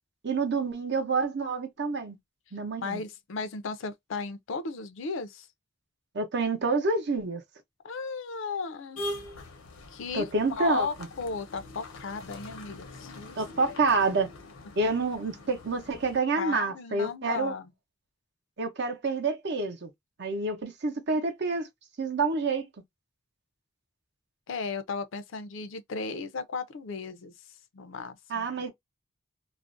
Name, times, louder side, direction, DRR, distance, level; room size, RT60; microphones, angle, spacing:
voice 1, 0.2-2.2 2.5-3.0 6.1-7.4 10.1-10.9 13.4-14.3 14.8-17.5 18.6-19.9 20.2-21.7 22.0-22.6 28.3-28.7, right 3 dB, 55° right, 0.6 m, -28 dB
voice 2, 2.8-5.5 7.8-9.0 9.9-10.3 10.6-13.8 16.4-17.7 24.5-27.3 27.7-28.5, left 4 dB, 65° left, 0.4 m, -35 dB
sound 1, 9.0-16.2, left 1 dB, 85° left, 0.7 m, -43 dB
2.4 x 2.0 x 2.5 m
head